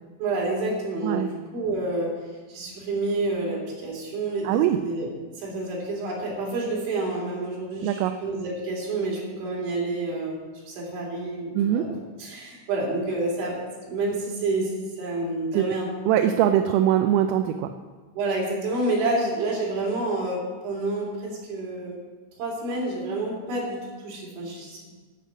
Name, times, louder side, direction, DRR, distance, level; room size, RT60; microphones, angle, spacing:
voice 1, 0.2-1.3 1.5-2.1 2.5-5.1 5.4-10.4 10.7-11.9 12.2-15.9 16.2-16.3 18.2-22.0 22.4-24.9, right 2 dB, 70° right, -3 dB, 5.6 m, -29 dB
voice 2, 4.4-4.8 7.8-8.1 11.5-11.8 15.5-15.7 16.1-17.7, right 11 dB, 85° right, 7 dB, 3.2 m, -22 dB
11.5 x 7.6 x 8.0 m, 1.4 s
omnidirectional pair, 5.7 m